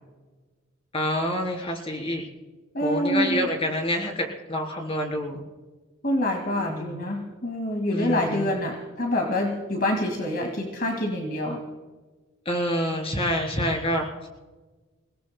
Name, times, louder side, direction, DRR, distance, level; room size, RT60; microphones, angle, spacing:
voice 1, 0.9-2.2 2.8-5.4 6.6-7.0 7.9-8.5 12.4-14.3, equal, 30° left, 2 dB, 3.3 m, -27 dB
voice 2, 2.7-3.5 6.0-11.6, left 1 dB, 50° left, 2 dB, 2.0 m, -26 dB
29.0 x 17.5 x 2.2 m, 1.3 s
head